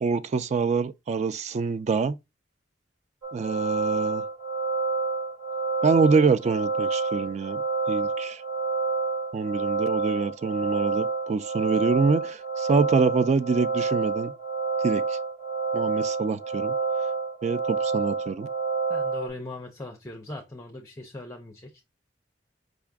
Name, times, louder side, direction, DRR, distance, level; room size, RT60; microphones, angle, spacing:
voice 1, 0.0-2.2 3.3-4.2 5.8-8.4 9.3-14.3 14.8-15.2 15.7-16.7 17.4-18.5, right 4 dB, 40° right, 0.3 m, -25 dB
sound 1, 3.2-19.3, right 4 dB, 80° right, 2.5 m, -28 dB
voice 2, 18.9-21.9, left 2 dB, 15° left, 0.5 m, -40 dB
5.1 x 2.4 x 3.4 m
head